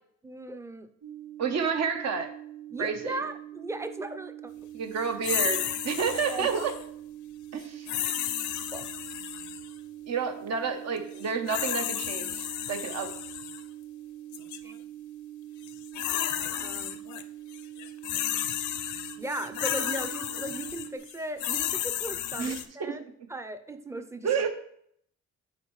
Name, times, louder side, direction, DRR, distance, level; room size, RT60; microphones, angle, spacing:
voice 1, 0.2-0.9 2.7-4.5 6.3-6.5 8.7-8.9 14.6-14.7 16.6-17.0 19.2-23.0 23.3-24.3, right 2 dB, 10° right, 8 dB, 0.6 m, -37 dB
sound 1, 1.0-21.0, right 12 dB, 85° right, 0.9 m, -44 dB
voice 2, 1.4-2.3 2.8-3.2 4.7-6.7 7.5-7.9 10.1-13.1 22.4-23.1 24.2-24.5, right 6 dB, 60° right, 6 dB, 1.0 m, -30 dB
sound 2, 5.2-6.8 7.9-9.7 11.2-13.6 14.3-14.6 15.6-17.2 17.5-22.7, left 11 dB, 70° left, 0.6 m, -33 dB
9.1 x 4.2 x 3.2 m, 0.68 s
cardioid pair, 90°, 30 cm